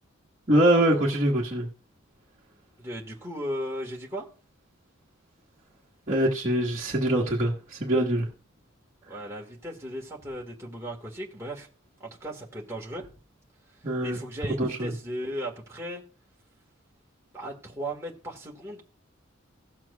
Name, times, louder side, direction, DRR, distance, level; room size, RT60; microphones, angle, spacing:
voice 1, 0.5-1.7 6.1-8.3 13.8-14.2 14.6-14.9, right 1 dB, 35° right, 1.3 m, -24 dB
voice 2, 2.8-4.3 9.0-11.7 12.0-13.0 14.0-16.0 17.3-18.8, equal, 15° right, 1.6 m, -36 dB
17.0 x 7.4 x 2.3 m
head